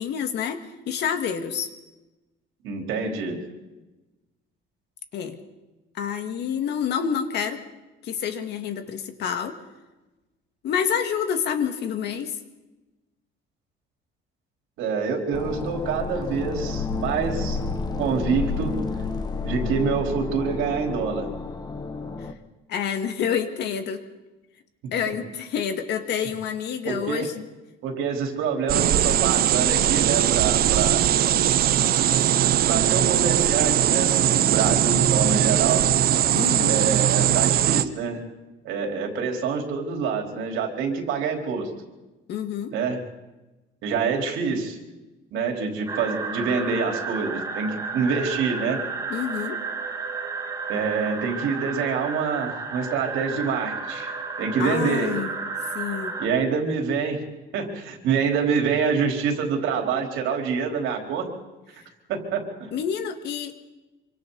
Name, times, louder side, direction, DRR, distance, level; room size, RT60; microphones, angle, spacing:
voice 1, 0.0-1.7 5.1-5.4 5.9-7.6 8.0-9.6 10.6-12.4 22.2-22.3 22.7-24.0 24.9-27.5 36.3-36.8 42.3-42.7 49.1-49.6 54.6-55.3 55.7-56.2 62.7-63.5, left 8 dB, 55° left, 6 dB, 2.0 m, -28 dB
voice 2, 2.6-3.4 14.8-17.6 18.0-18.8 19.4-21.3 25.1-25.2 26.8-27.3 27.8-31.0 32.0-32.1 32.3-35.8 36.7-38.2 38.6-41.7 42.7-43.0 43.8-44.8 45.3-48.8 50.7-54.1 54.4-55.1 56.2-57.2 57.5-61.3 61.7-61.8 62.1-62.7, right 5 dB, 75° right, 1 dB, 4.2 m, -26 dB
sound 1, 15.3-22.3, left 4 dB, 20° left, 1.1 m, -30 dB
sound 2, 28.7-37.8, right 11 dB, 50° right, 0.8 m, -20 dB
sound 3, 45.9-56.3, right 4 dB, 15° right, 1.6 m, -32 dB
26.5 x 25.0 x 4.1 m, 1.1 s
cardioid pair, 175°, 20 cm